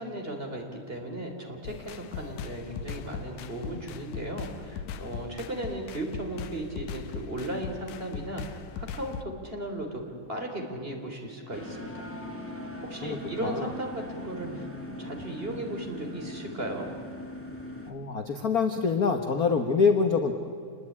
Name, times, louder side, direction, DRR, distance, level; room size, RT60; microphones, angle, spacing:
voice 1, 0.0-10.0 10.3-12.1 12.8-16.9, right 1 dB, 20° right, 2 dB, 3.5 m, -36 dB
sound 1, 1.6-9.2, left 7 dB, 80° left, 2.3 m, -40 dB
sound 2, 11.5-17.9, left 1 dB, 5° left, 2.1 m, -40 dB
voice 2, 13.0-13.7 17.9-20.3, left 5 dB, 50° left, 6 dB, 1.2 m, -25 dB
27.5 x 20.5 x 9.8 m, 2.3 s
omnidirectional pair, 3.4 m